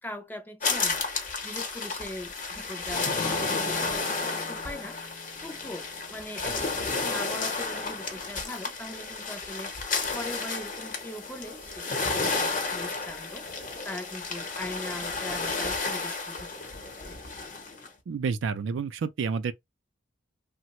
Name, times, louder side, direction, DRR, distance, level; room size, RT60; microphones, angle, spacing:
voice 1, 0.0-13.5 13.8-17.1, left 1 dB, 10° left, 0.4 m, -41 dB
sound 1, 0.6-17.9, left 4 dB, 45° left, 0.8 m, -32 dB
Acoustic guitar / Strum, 3.1-7.3, left 2 dB, 75° left, 0.7 m, -44 dB
voice 2, 18.1-19.5, right 5 dB, 70° right, 0.4 m, -29 dB
3.2 x 2.0 x 2.9 m
head